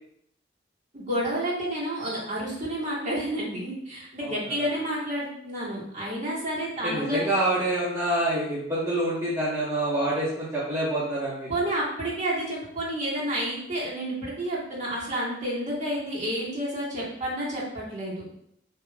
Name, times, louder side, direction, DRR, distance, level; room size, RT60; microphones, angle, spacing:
voice 1, 0.9-7.2 11.5-18.2, right 1 dB, 40° right, -6 dB, 1.7 m, -30 dB
voice 2, 4.2-4.7 6.8-11.5, right 1 dB, 15° right, -9 dB, 0.9 m, -27 dB
7.4 x 3.0 x 2.2 m, 0.73 s
head